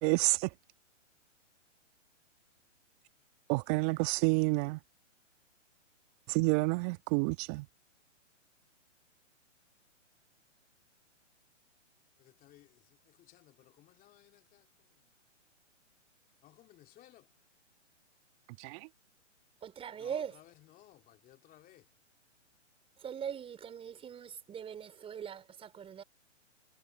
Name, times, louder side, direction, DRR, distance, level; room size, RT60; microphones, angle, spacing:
voice 1, 0.0-0.5 3.5-4.8 6.3-7.7 18.6-18.8, right 27 dB, 30° right, 1.8 m, -29 dB
voice 2, 13.3-14.6 16.4-17.2 20.0-20.1 20.7-21.8, left 14 dB, 20° left, 3.0 m, -59 dB
voice 3, 19.6-20.4 23.0-26.0, right 8 dB, 15° right, 5.2 m, -41 dB
hypercardioid pair, 130°, 37 cm